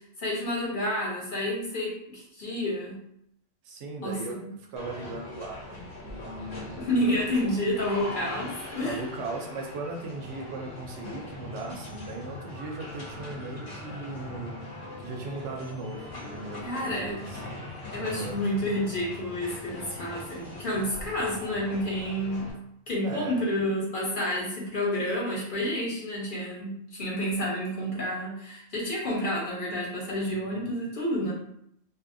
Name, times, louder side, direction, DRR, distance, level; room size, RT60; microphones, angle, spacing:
voice 1, 0.2-3.0 4.0-4.4 6.8-9.0 16.6-17.1 17.9-22.5 22.9-31.3, left 1 dB, 45° left, -5 dB, 1.0 m, -29 dB
voice 2, 3.6-4.4 4.7-6.8 8.8-14.7 15.0-17.4 18.0-18.4 23.0-23.5 30.3-30.7, right 3 dB, 75° right, 1 dB, 0.9 m, -38 dB
sound 1, 4.8-22.5, left 2 dB, 90° left, 1.2 m, -41 dB
2.7 x 2.6 x 2.5 m, 0.74 s
omnidirectional pair, 1.2 m